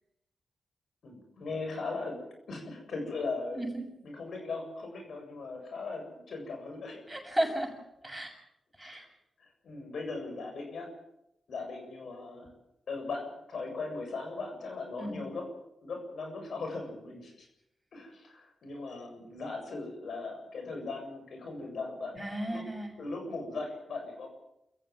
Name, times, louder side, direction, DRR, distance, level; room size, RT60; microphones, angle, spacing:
voice 1, 1.0-2.2 2.5-3.6 4.0-7.0 8.8-9.1 9.4-10.9 11.5-12.5 12.9-15.5 15.8-17.5 17.9-22.2 22.5-22.7 23.0-24.3, left 3 dB, 70° left, 3 dB, 7.5 m, -38 dB
voice 2, 7.1-7.8 8.0-8.3 8.8-9.0 15.0-15.2 22.1-22.9, right 1 dB, 5° right, 3 dB, 7.0 m, -33 dB
28.0 x 14.5 x 7.7 m, 0.84 s
cardioid pair, 60°, 0 cm